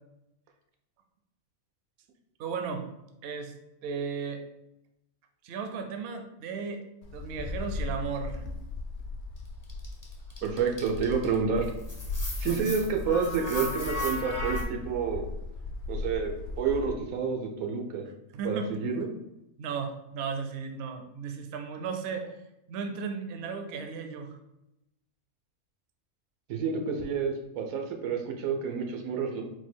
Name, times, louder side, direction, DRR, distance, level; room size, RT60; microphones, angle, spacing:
voice 1, 2.4-2.8 3.2-3.5 3.8-4.4 5.4-6.8 7.1-8.4 12.5-12.7 18.3-18.7 19.6-22.4 22.7-24.4, right 5 dB, 65° right, 6 dB, 0.7 m, -35 dB
Wind, 7.0-17.0, left 3 dB, 60° left, 0.7 m, -37 dB
sound 1, 9.7-11.3 11.6-14.6, left 1 dB, 20° left, 0.5 m, -36 dB
voice 2, 10.4-11.7 12.4-15.2 15.9-16.3 16.6-18.0 18.4-19.1 26.5-29.4, right 5 dB, 90° right, 3 dB, 1.2 m, -29 dB
4.3 x 2.3 x 4.3 m, 0.89 s
omnidirectional pair, 1.5 m